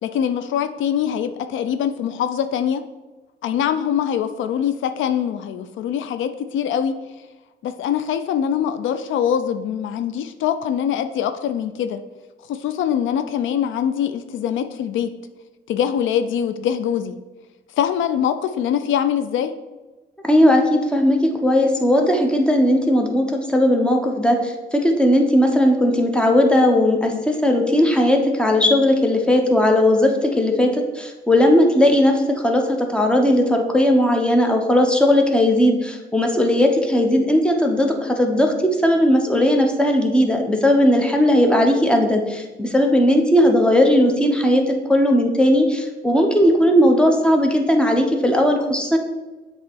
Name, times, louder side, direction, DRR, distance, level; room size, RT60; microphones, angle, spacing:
voice 1, 0.0-2.8 3.4-7.0 7.6-12.0 12.5-15.1 15.7-17.2 17.8-19.5, left 9 dB, 75° left, 10 dB, 0.4 m, -23 dB
voice 2, 20.2-38.5 38.8-49.0, left 1 dB, 5° left, 3 dB, 0.9 m, -17 dB
7.3 x 3.0 x 4.5 m, 1.2 s
cardioid pair, 90°, 20 cm